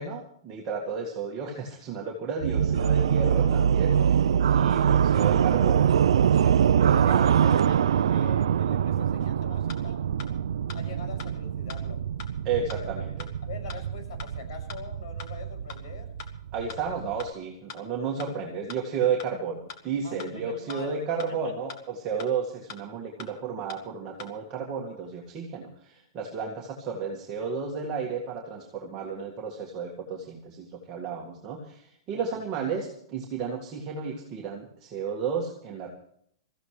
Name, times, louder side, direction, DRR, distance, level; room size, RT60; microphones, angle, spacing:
voice 1, 0.0-7.3 12.4-13.1 16.5-35.9, right 5 dB, 20° right, -2 dB, 2.0 m, -33 dB
sound 1, 2.4-17.3, right 8 dB, 85° right, 0.5 m, -24 dB
voice 2, 6.4-10.0 10.7-12.1 12.7-12.9 13.4-16.1 20.0-21.2 21.4-21.5 32.1-32.5, left 4 dB, 65° left, 6 dB, 6.3 m, -43 dB
sound 2, 9.2-9.3 9.7-9.8 10.2-10.3 10.7-10.8 11.2-11.3 11.7-11.8 12.2-12.3 12.7-12.8 13.2-13.3 13.7-13.8 14.2-14.3 14.7-14.8 15.2-15.3 15.7-15.8 16.2-16.3 16.7-16.8 17.2-17.3 17.7-17.8 18.2-18.3 18.7-18.8 19.2-19.3 19.7-19.8 20.2-20.3 20.7-20.8 21.2-21.3 21.7-21.8 22.2-22.3 22.7-22.8 23.2-23.3 23.7-23.8 24.2-24.3, left 6 dB, 45° left, 2.2 m, -41 dB
23.0 x 15.0 x 3.2 m, 0.67 s
supercardioid pair, 170°, 3 cm